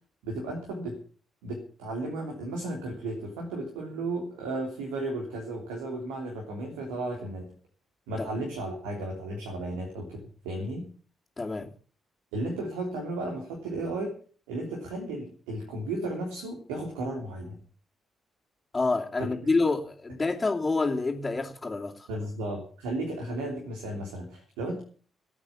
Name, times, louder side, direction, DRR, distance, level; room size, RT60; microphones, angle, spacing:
voice 1, 0.2-0.9 1.4-7.5 8.1-10.9 12.3-14.1 14.5-17.6 19.2-19.5 22.1-24.8, right 2 dB, 75° right, 1 dB, 3.2 m, -34 dB
voice 2, 11.4-11.7 18.7-22.1, left 3 dB, 25° left, -4 dB, 2.8 m, -28 dB
17.0 x 8.9 x 7.1 m, 0.42 s
figure-of-eight pair, 40°, 0 cm